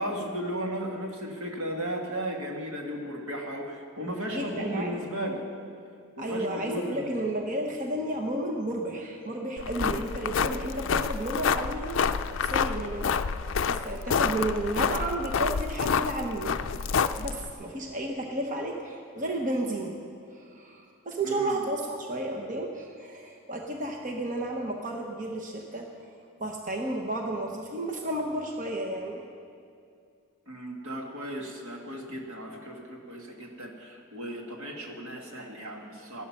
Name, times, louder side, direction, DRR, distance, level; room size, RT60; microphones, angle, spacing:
voice 1, 0.0-5.4 6.2-7.3 9.7-10.1 21.2-21.6 30.5-36.3, equal, 75° right, 1 dB, 1.9 m, -35 dB
voice 2, 4.3-5.1 6.2-16.9 17.2-20.0 20.3-25.9 26.4-29.2, right 1 dB, 35° right, 1 dB, 1.0 m, -32 dB
sound 1, 9.6-17.5, left 6 dB, 60° left, 0.4 m, -28 dB
14.5 x 12.0 x 5.9 m, 2.4 s
head